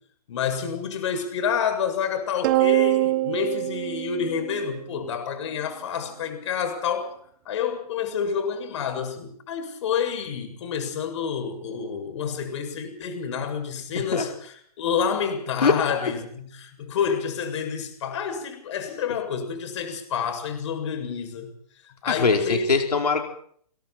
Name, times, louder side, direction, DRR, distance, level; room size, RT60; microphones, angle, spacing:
voice 1, 0.3-7.1 7.5-21.5 22.0-22.7, left 7 dB, 50° left, 7 dB, 7.4 m, -28 dB
sound 1, 2.4-5.0, right 18 dB, 35° right, 1.4 m, -24 dB
voice 2, 15.6-16.1 22.1-23.2, left 4 dB, 85° left, 3 dB, 4.8 m, -22 dB
29.5 x 27.5 x 4.5 m, 0.62 s
hypercardioid pair, 150°, 20 cm